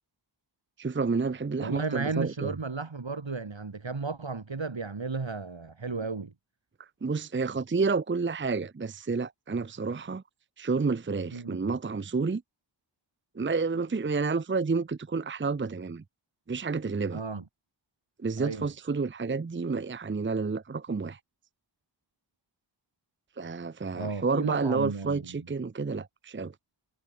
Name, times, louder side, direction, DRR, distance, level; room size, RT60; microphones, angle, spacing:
voice 1, 0.8-2.5 7.0-10.2 10.6-12.4 13.4-16.0 16.5-17.2 18.2-21.2 23.4-26.5, right 4 dB, 25° right, 0.6 m, -30 dB
voice 2, 1.6-6.3 11.3-11.6 17.1-17.4 18.4-18.7 23.9-25.5, right 4 dB, 80° right, 5.6 m, -34 dB
wide cardioid pair, 70°, 45 cm